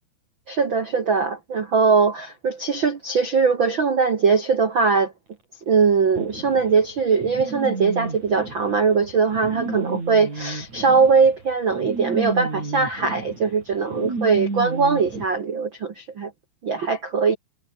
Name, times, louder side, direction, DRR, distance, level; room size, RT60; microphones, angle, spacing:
voice 1, 0.5-5.1 5.7-16.3 16.6-17.4, right 5 dB, 60° right, 1.2 m, -21 dB
sound 1, 6.2-15.3, right 3 dB, 40° right, 8.7 m, -32 dB
omnidirectional pair, 4.9 m